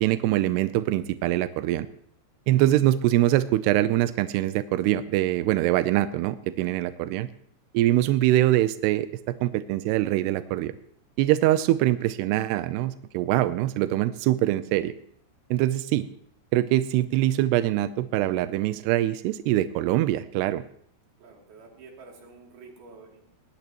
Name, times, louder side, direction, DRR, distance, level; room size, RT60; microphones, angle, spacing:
voice 1, 0.0-1.9 2.5-7.3 7.7-10.8 11.2-14.9 15.5-16.1 16.5-20.6, right 14 dB, 85° right, 12 dB, 2.4 m, -23 dB
voice 2, 21.2-23.2, right 4 dB, 55° right, 0 dB, 4.6 m, -48 dB
19.5 x 18.0 x 3.0 m, 0.67 s
omnidirectional pair, 5.5 m